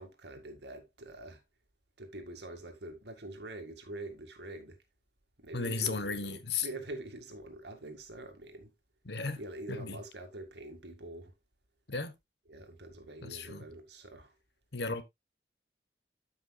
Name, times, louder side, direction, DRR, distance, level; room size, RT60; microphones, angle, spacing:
voice 1, 0.0-1.4 2.0-4.8 5.4-8.7 9.4-11.3 12.5-14.3, right 1 dB, 75° right, 2.1 m, -45 dB
voice 2, 5.5-6.7 9.0-9.4 9.7-10.0 11.9-12.2 13.2-13.6 14.7-15.0, left 4 dB, 75° left, 1.2 m, -35 dB
13.0 x 5.8 x 2.3 m
head